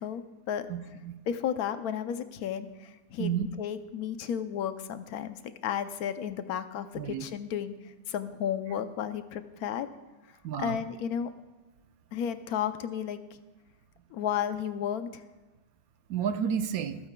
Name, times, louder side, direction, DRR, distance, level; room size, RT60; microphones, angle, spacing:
voice 1, 0.0-0.7 1.3-9.9 10.6-11.3 12.1-13.2 14.1-15.2, left 9 dB, 80° left, 10 dB, 1.1 m, -33 dB
voice 2, 0.7-1.2 3.2-3.5 7.0-7.3 10.4-10.8 16.1-17.0, right 8 dB, 75° right, 10 dB, 1.1 m, -31 dB
25.5 x 8.9 x 2.2 m, 1.2 s
omnidirectional pair, 1.6 m